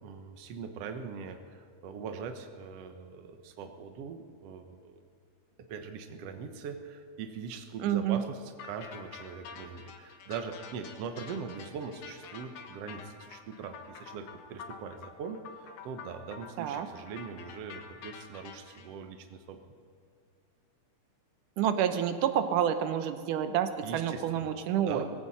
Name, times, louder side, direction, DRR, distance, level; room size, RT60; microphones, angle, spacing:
voice 1, 0.0-5.0 5.7-19.6 23.8-24.5 24.9-25.1, right 5 dB, 60° right, 6 dB, 2.0 m, -41 dB
voice 2, 7.8-8.2 16.6-16.9 21.6-25.1, right 9 dB, 85° right, 9 dB, 2.4 m, -28 dB
sound 1, 8.6-18.9, left 6 dB, 70° left, 2.5 m, -47 dB
19.5 x 16.5 x 4.2 m, 2.3 s
omnidirectional pair, 3.6 m